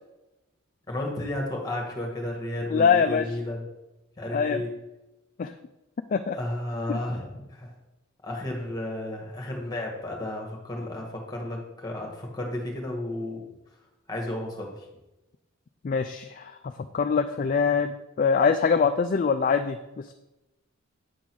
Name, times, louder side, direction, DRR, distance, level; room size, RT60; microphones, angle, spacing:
voice 1, 0.9-3.6 4.2-4.7 6.3-7.7 8.2-13.4 14.1-14.7, left 1 dB, 20° left, 0 dB, 1.6 m, -33 dB
voice 2, 2.7-3.3 4.3-4.6 5.4-5.5 6.1-6.4 6.9-7.0 15.8-16.5 16.9-20.1, left 6 dB, 40° left, 9 dB, 0.3 m, -23 dB
8.3 x 3.9 x 6.1 m, 0.99 s
head